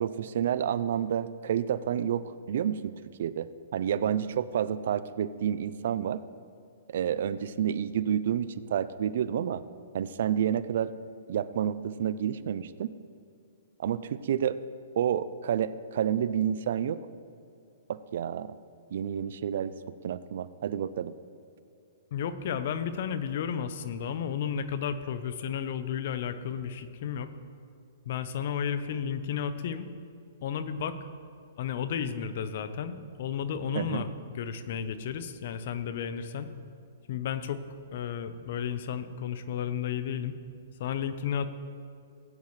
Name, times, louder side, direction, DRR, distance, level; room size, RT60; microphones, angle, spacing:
voice 1, 0.0-2.9 3.2-6.2 6.9-9.6 9.9-10.9 11.3-12.9 13.8-14.6 15.0-17.0 17.9-18.5 18.9-19.7 20.0-21.1 33.8-34.1, right 9 dB, 65° right, 16 dB, 0.4 m, -29 dB
voice 2, 22.1-27.3 28.0-29.9 30.4-31.0 31.6-36.5 37.1-37.6 37.9-40.3 40.8-41.7, left 8 dB, 55° left, 12 dB, 0.8 m, -33 dB
17.0 x 9.4 x 3.2 m, 2.5 s
hypercardioid pair, 130°, 0 cm